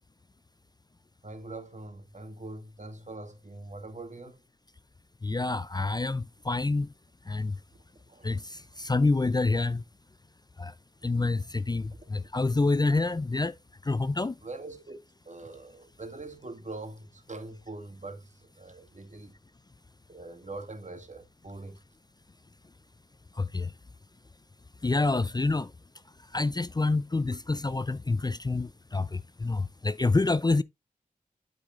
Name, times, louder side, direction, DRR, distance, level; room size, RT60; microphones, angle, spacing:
voice 1, 1.2-4.4 8.1-8.4 14.4-15.0 15.3-19.3 20.1-21.8, right 2 dB, 55° right, 2.1 m, -43 dB
voice 2, 5.2-6.9 7.3-7.6 8.2-9.8 10.6-10.7 11.0-13.6 13.8-14.3 23.4-23.7 24.8-25.7 26.3-30.6, left 3 dB, 30° left, 0.4 m, -27 dB
12.0 x 5.0 x 2.4 m
wide cardioid pair, 50°, 15 cm